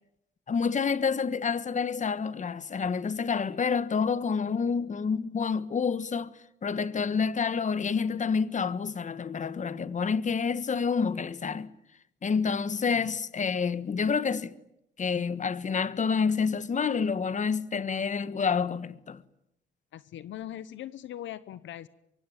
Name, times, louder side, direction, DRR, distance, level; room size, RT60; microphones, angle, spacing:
voice 1, 0.5-6.3 6.6-11.7 12.2-14.6 15.0-19.2, left 5 dB, 40° left, 1.4 m, -28 dB
voice 2, 19.9-21.9, left 12 dB, 70° left, 1.0 m, -40 dB
24.0 x 24.0 x 9.2 m
cardioid pair, 90°, 20 cm